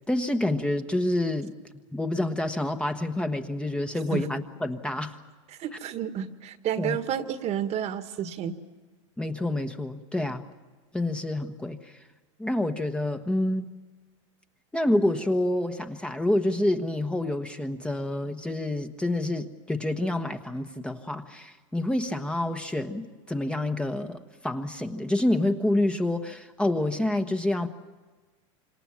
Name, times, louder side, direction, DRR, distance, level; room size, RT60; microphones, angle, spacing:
voice 1, 0.1-1.5 1.9-5.1 6.8-7.0 9.2-10.4 10.9-12.0 12.4-13.8 14.7-27.7, left 1 dB, 5° left, 6 dB, 1.3 m, -28 dB
voice 2, 5.5-8.6 10.2-10.3, right 9 dB, 40° right, 10 dB, 1.7 m, -31 dB
28.0 x 26.5 x 7.5 m, 1.3 s
hypercardioid pair, 110°, 17 cm